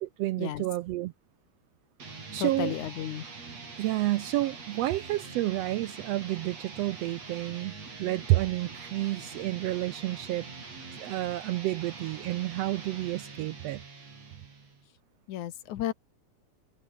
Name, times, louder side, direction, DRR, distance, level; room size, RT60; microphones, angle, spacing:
voice 1, 0.0-1.1 2.3-2.7 3.8-10.5 11.0-13.8, right 16 dB, 80° right, 1.5 m, -30 dB
sound 1, 2.0-14.8, right 4 dB, 60° right, 6.4 m, -44 dB
voice 2, 2.4-3.2 15.3-15.9, left 12 dB, 80° left, 2.7 m, -33 dB
omnidirectional pair, 3.4 m